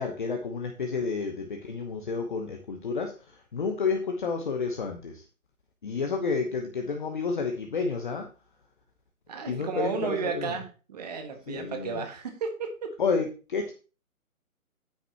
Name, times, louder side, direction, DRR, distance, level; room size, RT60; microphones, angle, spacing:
voice 1, 0.0-5.2 5.8-8.3 9.5-10.5 11.5-12.0 13.0-13.7, left 4 dB, 35° left, 4 dB, 1.1 m, -30 dB
voice 2, 9.3-12.7, right 5 dB, 30° right, 5 dB, 1.5 m, -33 dB
9.3 x 9.1 x 2.9 m, 0.34 s
figure-of-eight pair, 140°, 43 cm